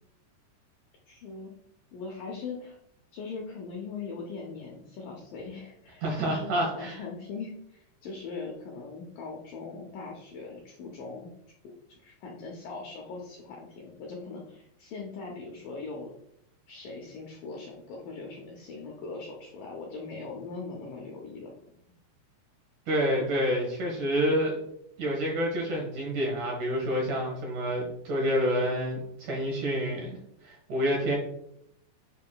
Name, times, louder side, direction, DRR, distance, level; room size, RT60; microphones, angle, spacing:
voice 1, 1.1-1.5 1.9-2.8 3.1-11.3 11.9-16.1 16.7-21.5, left 4 dB, 80° left, 0 dB, 2.0 m, -40 dB
voice 2, 6.0-7.0 22.9-24.6 25.0-31.2, equal, 65° right, -1 dB, 2.1 m, -28 dB
7.4 x 5.6 x 2.3 m, 0.76 s
omnidirectional pair, 4.9 m